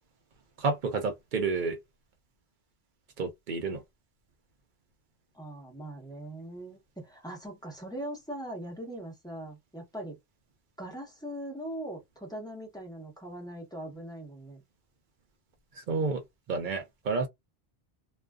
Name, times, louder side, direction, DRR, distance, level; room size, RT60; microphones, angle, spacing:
voice 1, 0.6-1.8 3.2-3.8 15.8-16.2 16.5-17.3, right 4 dB, 60° right, 0.7 m, -30 dB
voice 2, 5.3-10.2 10.8-14.6, right 1 dB, 5° left, 0.9 m, -41 dB
2.4 x 2.3 x 2.2 m
omnidirectional pair, 1.0 m